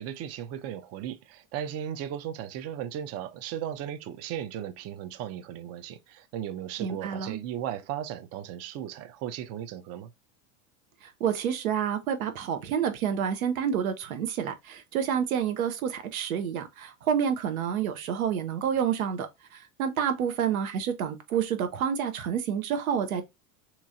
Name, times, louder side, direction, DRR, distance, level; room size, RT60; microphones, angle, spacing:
voice 1, 0.0-10.1, right 10 dB, 40° right, 0.5 m, -36 dB
voice 2, 6.8-7.4 11.0-19.3 19.5-23.2, right 8 dB, 90° right, 0.9 m, -29 dB
3.7 x 3.0 x 2.5 m
supercardioid pair, 110°, 41 cm